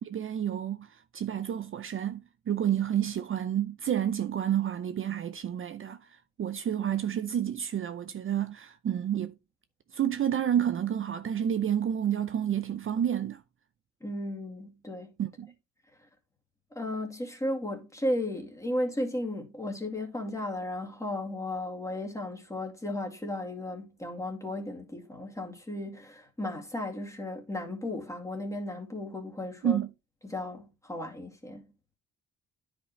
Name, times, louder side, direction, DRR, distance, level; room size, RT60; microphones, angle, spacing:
voice 1, 0.0-6.0 6.4-9.3 9.9-13.4 15.2-15.5 29.6-29.9, right 9 dB, 45° right, 0.6 m, -30 dB
voice 2, 14.0-15.1 16.7-29.8 30.3-31.7, left 1 dB, 10° left, 2.2 m, -35 dB
9.9 x 5.2 x 3.1 m
cardioid pair, 90°, 30 cm